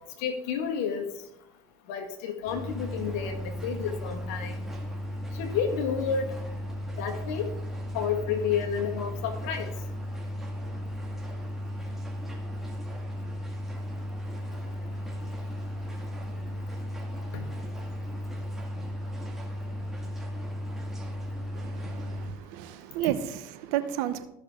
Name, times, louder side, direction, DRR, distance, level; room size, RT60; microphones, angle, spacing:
voice 1, 0.2-1.1 1.9-4.6 5.3-6.4 7.0-7.5 7.9-9.7 17.3-17.4, left 7 dB, 75° left, 4 dB, 1.8 m, -30 dB
sound 1, 2.5-22.3, equal, 5° right, 2.3 m, -35 dB
voice 2, 21.5-24.2, right 11 dB, 75° right, 12 dB, 0.9 m, -32 dB
14.0 x 6.1 x 3.8 m, 0.83 s
supercardioid pair, 95°, 9 cm